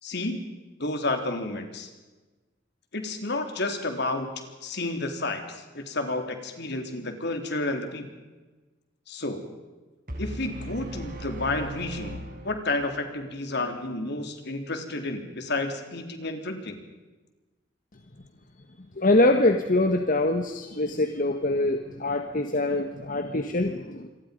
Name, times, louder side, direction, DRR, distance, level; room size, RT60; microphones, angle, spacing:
voice 1, 0.0-0.4 0.8-1.9 2.9-4.3 4.6-8.0 9.1-9.4 10.2-12.2 12.4-16.8, left 2 dB, 60° left, 5 dB, 3.7 m, -31 dB
sound 1, 10.1-13.1, right 1 dB, 50° right, 5.3 m, -38 dB
voice 2, 19.0-24.1, left 2 dB, 45° left, 6 dB, 1.6 m, -24 dB
27.5 x 23.0 x 5.4 m, 1.2 s
head